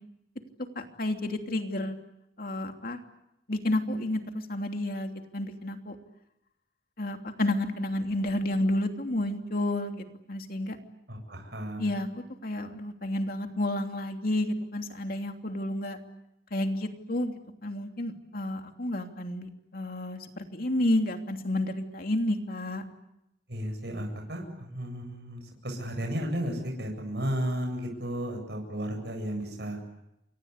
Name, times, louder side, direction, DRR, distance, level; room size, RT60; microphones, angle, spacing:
voice 1, 0.7-2.0 2.4-3.0 3.5-5.9 7.0-10.8 11.8-12.1 12.4-16.0 16.5-17.3 17.6-22.8, left 1 dB, 55° left, 4 dB, 3.0 m, -30 dB
voice 2, 11.1-12.0 23.5-29.8, equal, 65° right, 3 dB, 7.9 m, -34 dB
28.5 x 24.5 x 8.2 m, 0.85 s
head